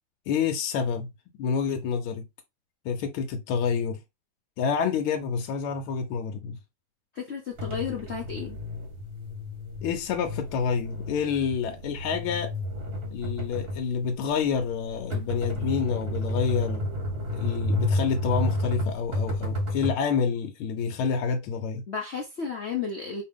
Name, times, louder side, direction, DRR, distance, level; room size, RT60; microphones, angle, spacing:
voice 1, 0.3-1.1 1.4-2.3 2.8-4.0 4.6-6.6 9.8-12.5 13.1-16.9 17.3-21.8, left 6 dB, 90° left, 1.5 m, -28 dB
voice 2, 7.1-8.6 21.9-23.2, left 6 dB, 65° left, 0.6 m, -33 dB
sound 1, 7.6-20.0, left 1 dB, 40° right, 1.0 m, -31 dB
4.9 x 2.8 x 3.5 m
omnidirectional pair, 2.3 m